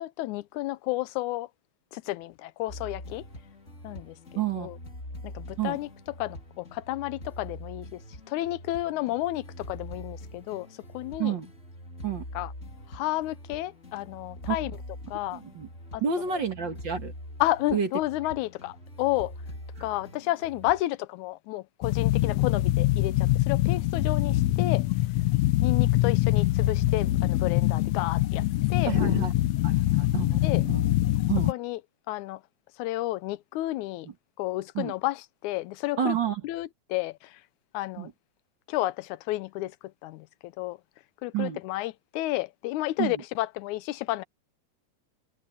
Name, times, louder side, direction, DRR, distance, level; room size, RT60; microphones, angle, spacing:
voice 1, 0.0-1.5 1.9-3.2 3.8-4.2 4.6-4.8 5.2-5.9 6.2-8.0 8.3-10.7 10.9-11.3 12.4-12.5 12.9-14.7 15.1-15.4 15.9-16.0 17.4-19.3 19.8-24.8 25.6-28.4 28.7-29.0 30.4-30.6 31.5-31.8 32.1-32.4 32.8-34.1 34.4-36.2 36.4-37.4 37.7-38.1 38.7-39.8 40.0-40.8 41.2-44.2, left 17 dB, 90° left, 2.1 m, -31 dB
sound 1, 2.7-20.8, left 1 dB, 25° left, 3.8 m, -44 dB
voice 2, 4.4-4.7 5.6-5.8 11.2-11.5 12.0-12.2 14.5-14.6 15.3-15.7 16.0-17.1 17.7-17.9 19.8-19.9 28.8-29.3 29.6-30.9 31.3-31.5 34.7-34.9 36.0-36.4 38.0-38.1 41.3-41.6 43.0-43.2, right 8 dB, 45° right, 2.0 m, -29 dB
sound 2, 21.8-31.5, left 16 dB, 75° left, 1.8 m, -24 dB
omnidirectional pair, 3.3 m